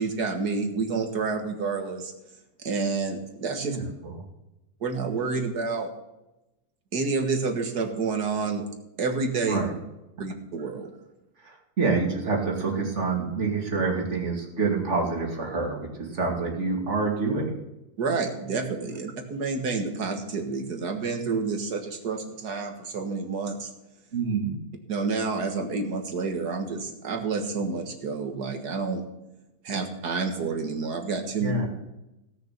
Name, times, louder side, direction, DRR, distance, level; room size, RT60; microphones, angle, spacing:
voice 1, 0.0-2.1 2.6-3.8 4.8-5.9 6.9-8.7 9.0-9.6 10.2-10.9 18.0-23.7 24.9-29.0 29.6-31.5, right 4 dB, 85° right, 4 dB, 2.1 m, -29 dB
voice 2, 3.6-4.2 9.5-9.7 11.4-17.5 24.1-24.5 31.3-31.7, right 4 dB, 45° right, -1 dB, 2.8 m, -27 dB
17.0 x 6.8 x 5.9 m, 0.94 s
omnidirectional pair, 1.7 m